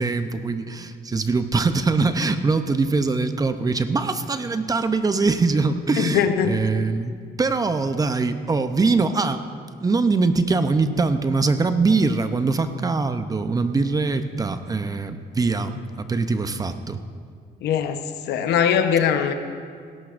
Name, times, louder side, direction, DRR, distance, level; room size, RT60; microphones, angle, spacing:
voice 1, 0.0-9.5 9.8-17.0, right 3 dB, 20° right, 10 dB, 0.6 m, -22 dB
voice 2, 6.0-6.5 17.6-18.0 18.3-19.3, left 8 dB, 80° left, 7 dB, 0.9 m, -20 dB
17.5 x 17.0 x 2.5 m, 2.1 s
cardioid pair, 110°, 17 cm